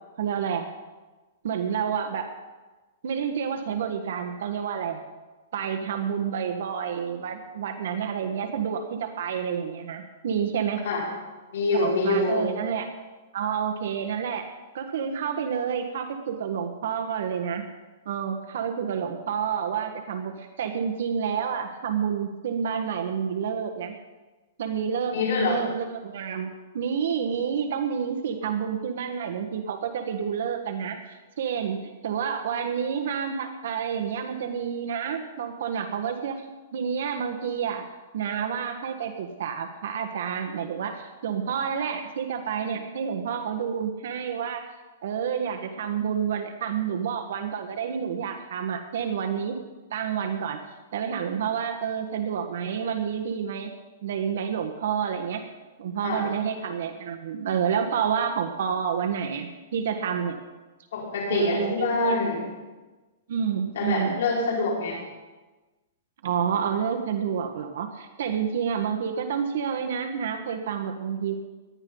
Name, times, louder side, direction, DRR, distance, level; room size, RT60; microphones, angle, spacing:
voice 1, 0.2-0.7 1.4-2.3 3.0-5.0 5.5-10.8 11.7-12.9 13.3-14.5 14.7-17.6 18.0-23.9 24.6-31.8 32.0-36.5 36.7-37.8 38.1-44.6 45.0-49.6 49.9-50.6 50.9-53.7 54.0-55.4 55.8-60.4 61.3-62.2 63.3-64.2 66.2-71.3, right 7 dB, 70° right, 5 dB, 1.4 m, -29 dB
voice 2, 11.5-12.5 25.1-25.6 56.0-56.3 60.9-62.4 63.7-65.0, left 3 dB, 70° left, -4 dB, 4.9 m, -25 dB
19.0 x 12.0 x 3.9 m, 1.2 s
hypercardioid pair, 155°, 0 cm